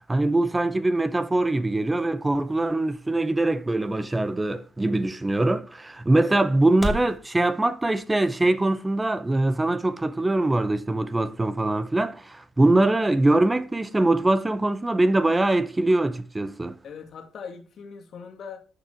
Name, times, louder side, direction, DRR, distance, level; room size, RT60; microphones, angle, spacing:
voice 1, 0.1-16.8, right 2 dB, 15° right, 0.8 m, -23 dB
sound 1, 0.9-7.2, equal, 15° left, 2.3 m, -40 dB
voice 2, 16.8-18.6, left 6 dB, 60° left, 2.1 m, -40 dB
11.5 x 6.9 x 4.5 m
cardioid pair, 90°, 0 cm